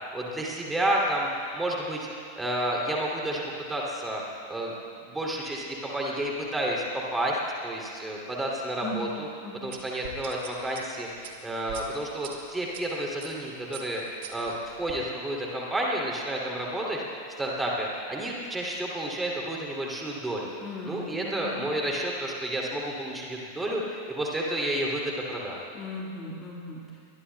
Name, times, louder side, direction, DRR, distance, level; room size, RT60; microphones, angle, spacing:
voice 1, 0.1-1.3 1.5-2.1 2.4-3.4 3.7-4.2 4.5-4.7 5.0-6.8 7.1-7.4 7.6-9.3 9.5-14.0 14.3-20.5 20.8-25.6, right 1 dB, 10° right, -2 dB, 2.8 m, -30 dB
voice 2, 8.8-9.2 9.4-9.8 20.6-21.7 25.7-26.8, left 2 dB, 25° left, -3 dB, 1.9 m, -38 dB
sound 1, 9.7-12.8 13.2-13.4 13.7-15.0, right 9 dB, 50° right, 1.5 m, -43 dB
23.0 x 21.0 x 2.3 m, 2.3 s
figure-of-eight pair, 90°, 0 cm